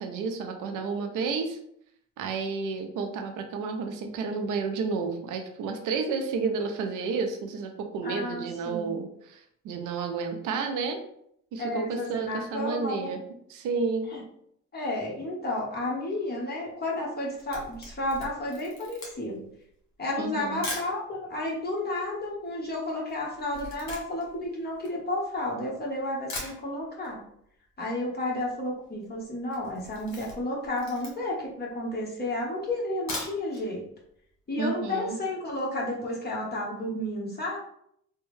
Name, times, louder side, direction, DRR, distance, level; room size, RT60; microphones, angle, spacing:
voice 1, 0.0-1.6 2.2-11.0 11.5-13.2 13.5-14.1 20.2-20.7 34.6-35.2, right 4 dB, 90° right, 5 dB, 0.6 m, -31 dB
voice 2, 8.0-8.9 11.6-13.2 14.1-14.2 14.7-19.5 20.0-27.2 27.8-33.8 34.5-37.6, left 1 dB, 30° left, -3 dB, 1.3 m, -32 dB
Camera, 17.1-21.0 21.7-21.8 21.9-25.6 26.0-26.1 26.3-27.1 27.4-27.5 27.8-27.9 28.1-28.5 28.8-29.1 29.4-31.5 32.0-32.1 32.9-33.7 34.0-34.1 34.5-34.6, left 2 dB, 65° left, 1.5 m, -40 dB
3.5 x 2.2 x 3.2 m, 0.70 s
cardioid pair, 90°, 30 cm